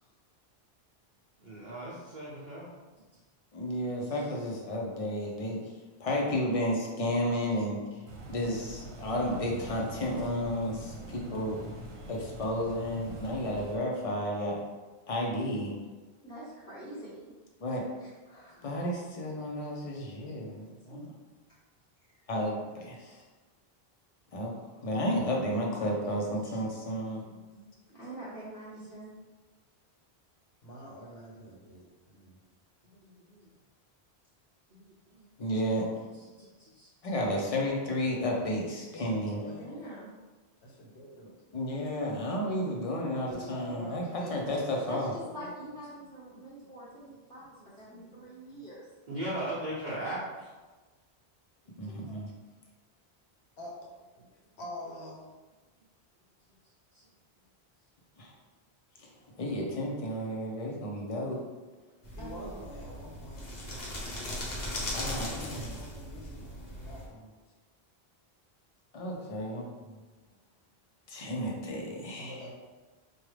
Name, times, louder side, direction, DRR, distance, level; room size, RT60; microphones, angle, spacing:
voice 1, 1.4-2.7 20.6-20.7 27.5-27.6 34.7-35.3 36.4-36.5 36.8-36.9 47.8-48.0 48.3-48.4 49.1-50.5, right 1 dB, 50° right, -8 dB, 0.8 m, -38 dB
voice 2, 3.5-5.6 6.0-8.0 8.3-11.6 12.1-14.7 15.1-15.7 17.6-17.8 18.6-21.0 22.3-23.2 24.3-24.5 24.8-27.2 35.4-35.8 37.0-39.4 41.5-44.0 44.3-45.1 51.8-52.3 58.2-58.3 59.0-59.1 59.4-61.4 64.9-65.7 68.9-69.6 71.1-72.4, equal, 40° left, -1 dB, 0.7 m, -32 dB
sound 1, 8.1-13.8, right 1 dB, 85° right, 0.9 m, -43 dB
voice 3, 16.2-17.3 18.0-18.8 20.9-21.0 22.1-22.2 27.9-29.1 39.3-40.1 44.9-48.9 52.1-52.2 62.2-62.5, right 1 dB, 5° left, -9 dB, 0.9 m, -45 dB
voice 4, 30.6-32.4 38.9-39.7 40.6-41.4 43.2-45.5 53.6-53.8 54.2-54.3 54.6-55.2 62.2-63.4 65.2-67.3 69.8-70.0 72.1-72.5, left 1 dB, 80° left, -3 dB, 1.2 m, -46 dB
sound 2, 62.0-67.1, left 1 dB, 65° left, 1.0 m, -38 dB
4.9 x 2.3 x 3.2 m, 1.3 s
omnidirectional pair, 1.1 m